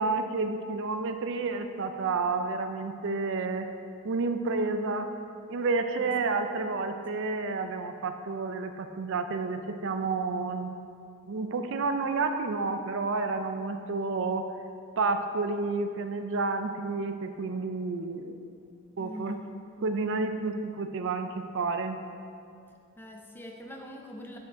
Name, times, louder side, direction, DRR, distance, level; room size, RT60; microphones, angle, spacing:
voice 1, 0.0-3.7 4.0-5.1 5.5-10.7 11.3-14.4 15.0-18.3 19.0-19.4 19.8-22.0, right 3 dB, 60° right, 7 dB, 0.5 m, -30 dB
voice 2, 6.5-7.0 19.0-19.4 23.0-24.4, equal, 10° left, 1 dB, 0.7 m, -43 dB
9.3 x 5.2 x 5.0 m, 2.5 s
head